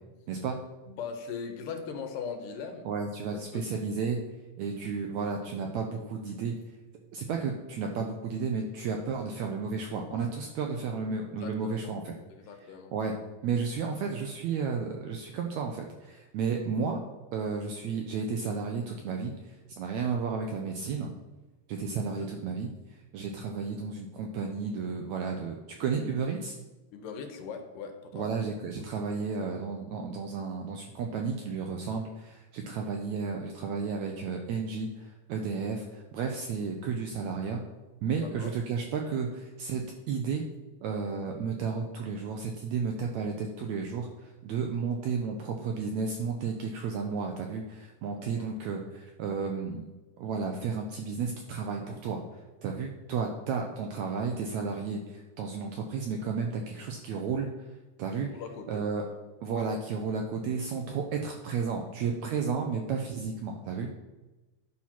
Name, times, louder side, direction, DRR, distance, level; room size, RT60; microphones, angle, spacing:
voice 1, 0.3-0.6 2.8-4.2 4.6-6.5 7.1-12.1 12.9-13.1 13.4-17.0 17.3-19.3 19.7-21.1 21.7-22.7 23.1-26.6 28.1-37.6 38.0-40.4 40.8-49.9 50.2-52.2 52.6-57.5 58.0-58.3 58.7-59.0 59.4-63.9, right 5 dB, 80° right, 2 dB, 1.7 m, -32 dB
voice 2, 0.9-2.9 3.5-3.7 11.4-11.9 12.3-12.9 22.3-22.4 26.9-28.3 38.2-38.5 48.3-48.5 58.3-58.8, left 6 dB, 80° left, 5 dB, 2.4 m, -40 dB
11.0 x 4.3 x 5.8 m, 1.1 s
omnidirectional pair, 4.0 m